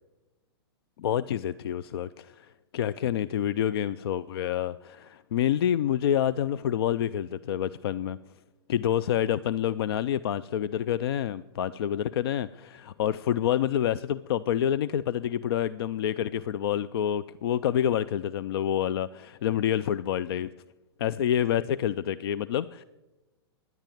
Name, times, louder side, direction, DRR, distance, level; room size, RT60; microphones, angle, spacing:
voice 1, 1.0-8.2 8.7-20.5 21.0-22.8, left 10 dB, 70° left, 17 dB, 0.4 m, -28 dB
12.0 x 10.5 x 9.2 m, 1.1 s
hypercardioid pair, 130°, 13 cm